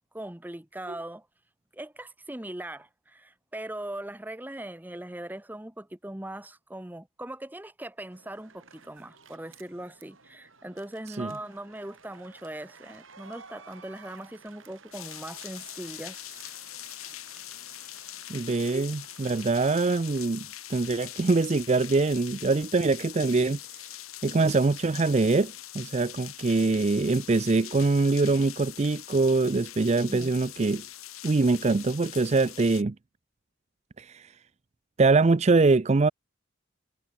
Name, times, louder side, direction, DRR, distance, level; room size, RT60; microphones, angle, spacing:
voice 1, 0.1-1.3 1.7-16.3 30.0-30.3, right 1 dB, 10° right, 0.8 m, -40 dB
sound 1, 8.1-20.3, right 5 dB, 70° right, 7.0 m, -53 dB
sound 2, 14.9-32.8, left 14 dB, 85° left, 3.0 m, -43 dB
voice 2, 18.3-23.6 24.2-30.8 31.2-32.9 34.0-34.3 35.0-36.1, right 3 dB, 30° right, 0.4 m, -24 dB
head